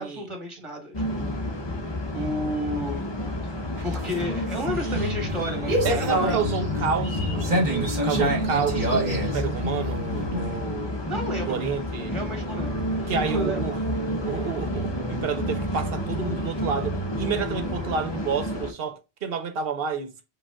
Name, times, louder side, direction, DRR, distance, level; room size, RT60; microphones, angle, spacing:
voice 1, 0.0-1.4 2.1-3.1 3.8-6.4 11.1-11.7 12.1-13.6, equal, 30° right, 1.5 m, -32 dB
sound 1, 0.9-18.7, left 1 dB, 30° left, 0.7 m, -30 dB
sound 2, 3.7-10.6, equal, 45° right, 1.3 m, -27 dB
voice 2, 5.8-11.1 11.5-12.1 13.1-13.8 14.2-20.2, right 6 dB, 65° right, 0.9 m, -30 dB
5.1 x 2.4 x 3.5 m
omnidirectional pair, 1.1 m